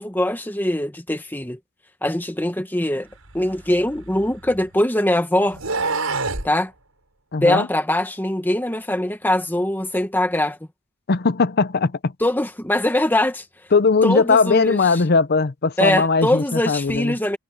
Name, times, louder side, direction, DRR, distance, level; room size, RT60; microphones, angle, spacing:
voice 1, 0.0-1.6 2.0-3.1 3.3-5.6 6.4-6.7 7.4-10.6 12.2-13.4 14.0-15.0 15.8-17.4, left 1 dB, 10° left, 1.3 m, -22 dB
sound 1, 3.3-4.7 5.5-6.5, right 3 dB, 80° right, 7.3 m, -27 dB
voice 2, 7.3-7.7 11.1-12.1 13.7-17.1, left 4 dB, 50° left, 0.6 m, -19 dB
head